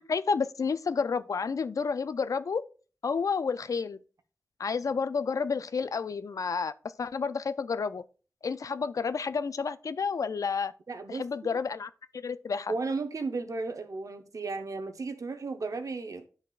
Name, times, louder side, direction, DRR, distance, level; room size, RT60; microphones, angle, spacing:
voice 1, 0.0-2.6 3.0-4.0 4.6-6.7 7.0-8.0 8.4-10.7 11.1-11.9 12.2-12.7, left 5 dB, 75° left, 0.4 m, -30 dB
voice 2, 10.9-11.3 12.7-16.2, right 3 dB, 70° right, 0.8 m, -34 dB
11.0 x 4.2 x 2.4 m
wide cardioid pair, 75°, 6 cm